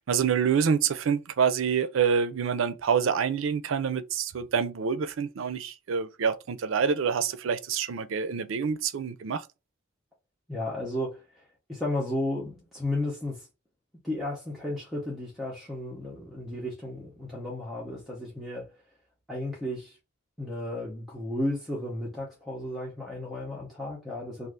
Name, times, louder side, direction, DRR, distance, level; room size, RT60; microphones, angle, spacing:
voice 1, 0.0-9.5, right 6 dB, 75° right, 0.4 m, -27 dB
voice 2, 10.5-11.2 11.7-13.5 14.0-18.7 19.3-20.0 20.4-24.5, left 1 dB, ahead, 0.7 m, -33 dB
2.5 x 2.4 x 3.4 m
head